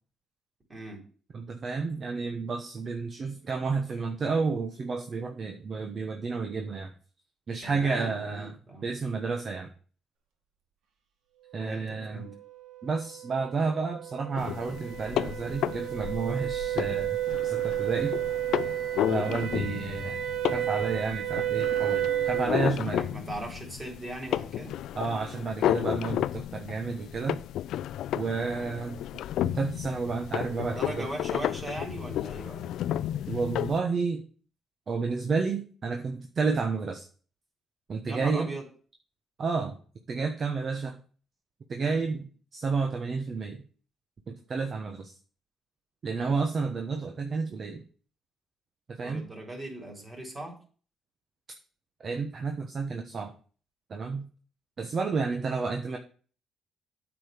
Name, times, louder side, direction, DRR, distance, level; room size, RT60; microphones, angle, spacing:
voice 1, 0.7-1.0 7.6-8.9 11.6-12.3 22.9-24.8 30.7-32.7 38.0-38.6 49.0-50.6, right 1 dB, 25° right, 1 dB, 4.1 m, -39 dB
voice 2, 1.3-6.9 7.5-8.5 8.8-9.7 11.5-12.2 12.8-17.2 17.4-18.1 19.1-20.2 20.5-23.0 24.9-27.4 28.1-29.0 29.4-31.1 33.3-34.2 34.9-37.1 37.9-38.5 39.4-39.8 40.1-41.0 41.7-43.6 44.3-45.1 46.0-47.8 48.9-49.2 52.0-53.3 53.9-54.2 54.8-56.0, right 4 dB, 45° right, 4 dB, 1.2 m, -31 dB
sound 1, 12.7-22.6, right 12 dB, 85° right, 1.5 m, -32 dB
sound 2, 14.4-33.8, left 12 dB, 80° left, 0.3 m, -33 dB
8.7 x 5.1 x 6.8 m, 0.41 s
cardioid pair, 90°, 0 cm